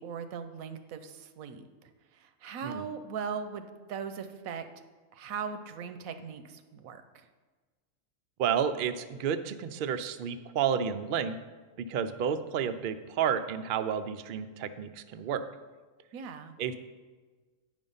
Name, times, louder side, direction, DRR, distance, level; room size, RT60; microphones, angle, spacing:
voice 1, 0.0-4.7 5.1-7.3 16.1-16.5, right 6 dB, 85° right, 9 dB, 1.1 m, -39 dB
voice 2, 8.4-11.4 11.8-15.5 16.6-16.8, right 8 dB, 70° right, 9 dB, 0.5 m, -31 dB
9.0 x 5.3 x 5.4 m, 1.4 s
omnidirectional pair, 1.4 m